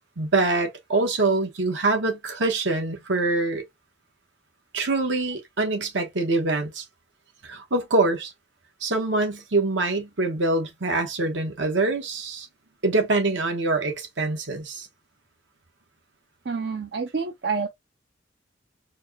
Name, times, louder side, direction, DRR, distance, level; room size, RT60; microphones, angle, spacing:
voice 1, 0.2-3.6 4.7-6.8 7.4-8.3 8.8-12.5 12.8-14.9, right 2 dB, 75° right, 1.2 m, -24 dB
voice 2, 16.5-17.7, right 5 dB, 60° right, 0.6 m, -28 dB
4.5 x 2.3 x 2.8 m
head